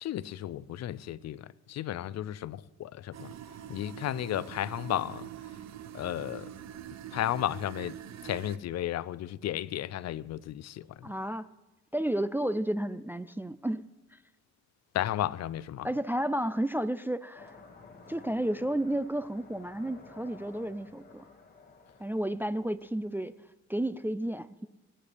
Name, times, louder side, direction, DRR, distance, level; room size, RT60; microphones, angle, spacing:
voice 1, 0.0-3.3 3.7-5.3 5.9-6.5 7.1-8.0 8.2-11.1 14.9-15.9, left 12 dB, 60° left, 0.5 m, -33 dB
sound 1, 3.1-8.6, right 10 dB, 60° right, 0.7 m, -44 dB
voice 2, 11.0-11.5 11.9-13.8 14.1-14.2 15.8-17.6 18.1-21.2 22.0-23.3 23.7-24.7, right 1 dB, 5° right, 0.3 m, -32 dB
sound 2, 17.3-23.3, left 4 dB, 30° left, 2.0 m, -54 dB
20.5 x 9.8 x 3.4 m
cardioid pair, 90°, 30 cm